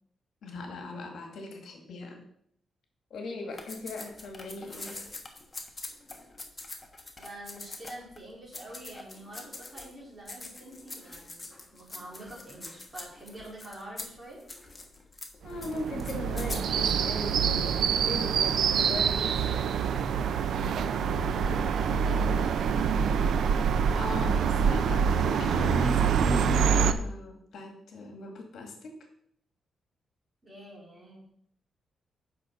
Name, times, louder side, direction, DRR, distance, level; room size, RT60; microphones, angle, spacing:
voice 1, 0.4-2.2 3.1-5.1 15.4-17.8 18.0-19.7 23.9-28.9, left 3 dB, 70° left, 3 dB, 1.9 m, -38 dB
sound 1, 3.5-8.2 8.5-10.0 10.3-16.8, left 2 dB, 20° left, 1.3 m, -44 dB
voice 2, 7.2-14.4 20.9-22.9 30.4-31.2, right 1 dB, 20° right, -4 dB, 3.6 m, -46 dB
sound 2, 15.5-26.9, right 7 dB, 75° right, 0.6 m, -26 dB
8.6 x 6.1 x 5.1 m, 0.67 s
wide cardioid pair, 145°, 0 cm